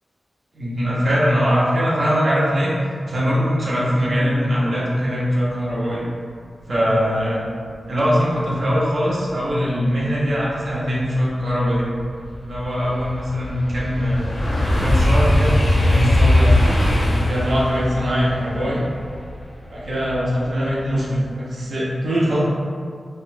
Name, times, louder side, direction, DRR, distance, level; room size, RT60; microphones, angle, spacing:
voice 1, 0.5-2.7 3.0-6.1 6.7-7.4 7.9-11.9 12.4-14.4 14.8-16.8 17.3-18.8 19.7-22.4, equal, 55° right, -6 dB, 0.6 m, -21 dB
sound 1, 10.8-10.9 11.4-20.4 20.9-21.2, left 1 dB, 40° left, 0.5 m, -20 dB
3.6 x 2.2 x 2.5 m, 2.1 s
wide cardioid pair, 140°, 0 cm